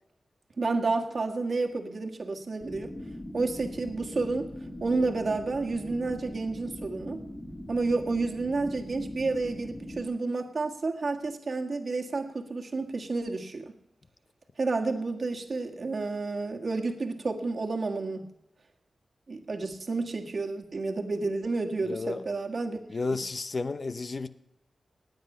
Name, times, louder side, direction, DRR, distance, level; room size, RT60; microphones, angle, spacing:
voice 1, 0.6-2.9 3.3-4.5 4.8-7.2 7.7-13.7 14.6-18.3 19.3-22.8 23.1-23.2, right 3 dB, 60° right, 3 dB, 1.6 m, -30 dB
sound 1, 2.6-10.0, left 1 dB, 20° left, 2.4 m, -41 dB
voice 2, 21.9-22.2 22.9-24.3, left 3 dB, 55° left, 11 dB, 0.7 m, -32 dB
19.5 x 8.0 x 5.5 m, 0.87 s
cardioid pair, 55°, 0 cm